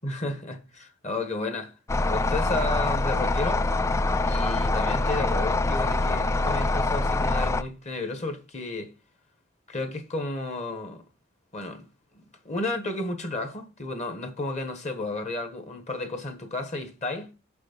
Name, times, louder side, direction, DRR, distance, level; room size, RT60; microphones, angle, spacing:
voice 1, 0.0-1.7 2.1-3.7 4.2-8.9 9.7-11.0 11.5-11.9 12.1-17.3, left 2 dB, 35° left, 1.3 m, -32 dB
sound 1, 1.9-7.6, left 2 dB, 15° left, 0.3 m, -24 dB
6.3 x 6.1 x 6.0 m
head